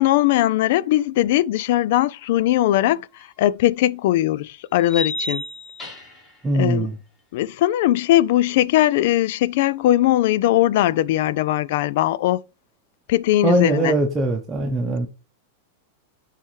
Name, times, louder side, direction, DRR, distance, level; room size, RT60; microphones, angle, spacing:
voice 1, 0.0-3.1 3.4-5.4 6.5-6.9 7.3-12.4 13.1-13.9, left 14 dB, 60° left, 0.3 m, -19 dB
sound 1, 3.2-3.3 4.9-6.3, left 2 dB, 25° left, 2.7 m, -30 dB
voice 2, 6.4-7.0 13.4-15.1, right 1 dB, 15° right, 0.8 m, -21 dB
9.7 x 3.5 x 3.2 m
supercardioid pair, 135°, 0 cm